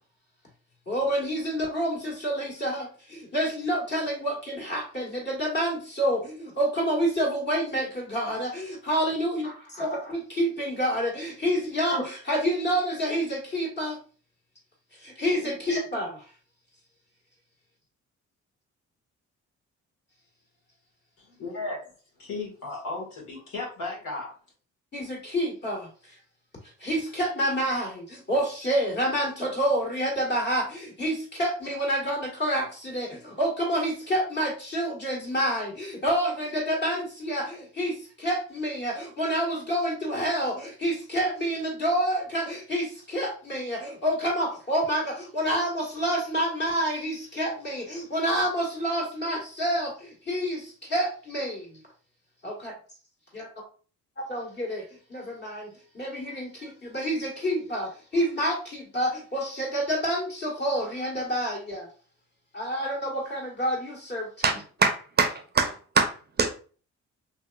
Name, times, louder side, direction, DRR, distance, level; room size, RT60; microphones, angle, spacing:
voice 1, 0.9-14.0 15.0-16.2 24.9-26.1 26.8-51.8 52.4-52.7 53.3-53.5 54.3-54.8 55.1-61.9 62.5-64.5, equal, 35° left, 1.6 m, -28 dB
voice 2, 21.2-21.8 22.2-24.3, left 3 dB, 80° left, 1.6 m, -35 dB
voice 3, 64.4-66.1 66.4-66.5, right 4 dB, 35° right, 0.5 m, -24 dB
3.4 x 2.7 x 2.3 m
cardioid pair, 90°, 30 cm